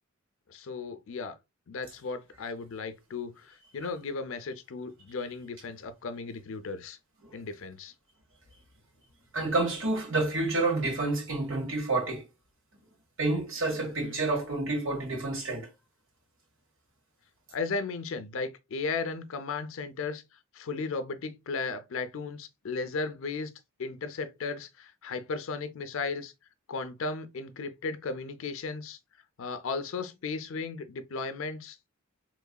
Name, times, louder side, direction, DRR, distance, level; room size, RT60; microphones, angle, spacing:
voice 1, 0.5-1.4 1.7-7.0 7.3-7.9 14.0-14.2 17.5-20.2 20.5-23.5 23.8-26.3 26.7-29.0 29.4-31.8, left 4 dB, 65° left, 0.5 m, -35 dB
voice 2, 9.3-12.2 13.2-15.7, right 2 dB, 65° right, 1.5 m, -29 dB
3.8 x 3.0 x 2.2 m
head